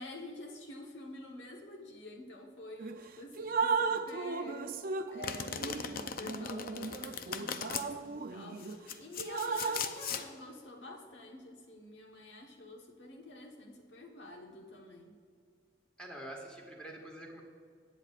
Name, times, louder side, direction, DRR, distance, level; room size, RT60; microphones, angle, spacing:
voice 1, 0.0-4.8 5.1-15.1, left 2 dB, 70° left, 1 dB, 1.3 m, -48 dB
Drip, 2.8-3.0 3.4-8.8 9.2-9.9, right 4 dB, 50° right, 0.5 m, -36 dB
Domestic sounds home sounds, 5.2-7.9 8.6-10.2, left 7 dB, 50° left, 0.5 m, -39 dB
voice 2, 16.0-17.4, right 1 dB, 5° left, 0 dB, 1.6 m, -46 dB
18.5 x 8.6 x 2.5 m, 2.1 s
head